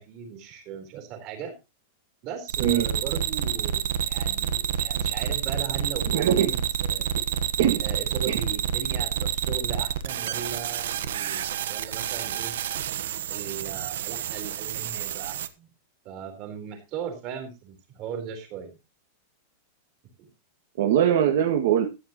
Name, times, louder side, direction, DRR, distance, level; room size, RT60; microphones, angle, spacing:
voice 1, 0.0-1.5 2.2-7.1 7.8-12.5 13.3-15.7 16.0-18.8 20.2-20.3, right 7 dB, 35° right, 5 dB, 4.3 m, -37 dB
sound 1, 2.5-15.5, right 8 dB, 85° right, 1.3 m, -29 dB
voice 2, 6.1-6.5 7.6-7.8 8.3-8.4 20.8-21.9, right 10 dB, 65° right, 2 dB, 2.1 m, -21 dB
14.5 x 9.9 x 3.1 m, 0.27 s
supercardioid pair, 170°, 0 cm